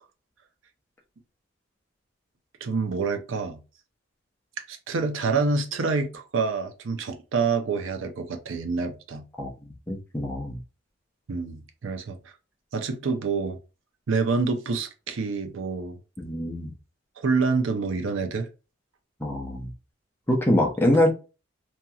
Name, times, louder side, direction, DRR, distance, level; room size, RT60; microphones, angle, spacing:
voice 1, 2.6-3.6 4.7-9.2 11.3-12.2 12.7-13.6 14.1-16.0 17.2-18.5 20.9-21.0, right 4 dB, 65° right, 0.5 m, -27 dB
voice 2, 9.9-10.6 16.2-16.7 19.2-19.7 20.3-21.1, left 1 dB, 10° left, 0.6 m, -24 dB
2.8 x 2.8 x 2.3 m
head